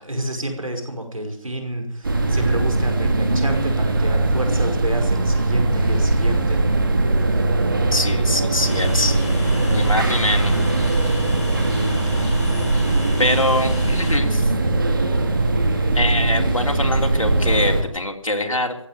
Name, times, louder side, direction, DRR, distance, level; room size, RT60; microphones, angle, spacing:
voice 1, 0.0-6.6, right 1 dB, 90° right, 4 dB, 5.3 m, -29 dB
sound 1, 2.0-17.8, right 2 dB, 40° right, 2.1 m, -20 dB
voice 2, 7.9-9.2 9.7-10.5 12.1-12.2 13.2-14.5 15.9-18.8, left 1 dB, 80° left, 3 dB, 3.2 m, -23 dB
Train, 8.6-14.2, left 2 dB, 30° left, 3.2 m, -34 dB
15.5 x 9.8 x 9.3 m, 0.70 s
figure-of-eight pair, 165°, 17 cm